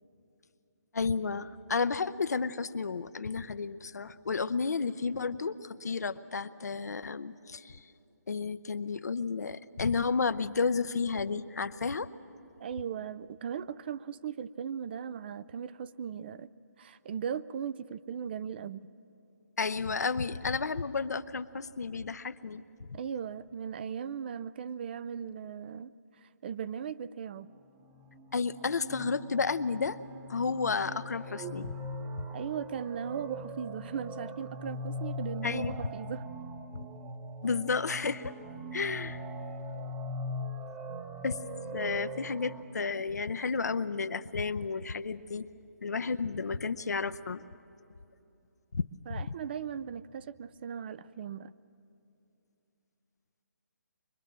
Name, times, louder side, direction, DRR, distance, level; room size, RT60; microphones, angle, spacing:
voice 1, 0.9-7.8 8.3-12.1 19.6-22.6 22.9-23.0 28.3-30.0 30.3-31.7 35.4-35.7 37.4-38.3 38.7-39.2 41.2-41.4 41.7-45.5 45.8-47.4 48.7-49.3, left 4 dB, 75° left, 13 dB, 0.7 m, -32 dB
voice 2, 12.6-16.5 16.8-18.8 22.9-25.9 26.2-27.5 32.3-36.3 49.1-51.5, right 7 dB, 35° right, 16 dB, 0.5 m, -38 dB
sound 1, 27.9-42.6, equal, 15° right, 0.9 m, -41 dB
23.5 x 22.0 x 7.5 m, 2.8 s
hypercardioid pair, 150°, 9 cm